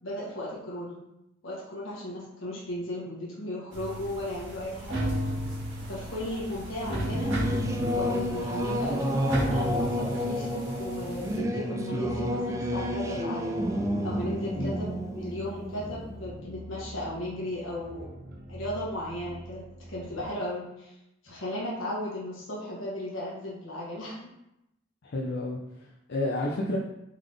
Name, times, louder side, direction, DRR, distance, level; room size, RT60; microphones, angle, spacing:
voice 1, 0.0-1.0 1.4-5.3 5.9-7.3 7.9-13.6 14.0-14.9 15.1-18.1 18.5-19.6 19.9-20.9 21.2-24.2, left 1 dB, 85° left, -6 dB, 1.3 m, -35 dB
sound 1, 3.7-11.4, equal, 80° right, 1.6 m, -34 dB
Singing / Musical instrument, 6.8-16.9, equal, 15° right, 0.3 m, -30 dB
sound 2, 11.9-20.3, equal, 55° right, 0.8 m, -44 dB
voice 2, 25.0-26.8, left 2 dB, 60° left, -2 dB, 0.5 m, -31 dB
3.8 x 3.5 x 3.3 m, 0.85 s
head